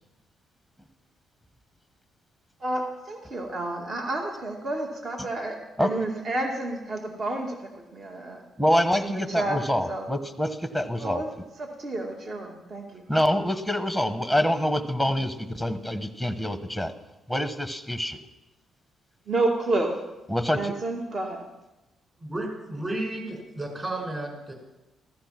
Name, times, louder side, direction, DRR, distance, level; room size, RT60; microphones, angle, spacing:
voice 1, 2.6-8.4 9.1-9.6 9.9-10.1 11.0-11.3 11.6-13.0 19.3-20.0 20.5-21.4, right 2 dB, 50° right, 1 dB, 2.5 m, -30 dB
voice 2, 5.8-6.1 8.6-11.4 13.1-16.9 17.3-18.2 20.3-20.7, equal, 10° right, 8 dB, 1.3 m, -26 dB
voice 3, 22.2-24.5, right 1 dB, 25° right, 2 dB, 6.0 m, -32 dB
15.0 x 14.5 x 6.0 m, 1.0 s
cardioid pair, 90°, 0 cm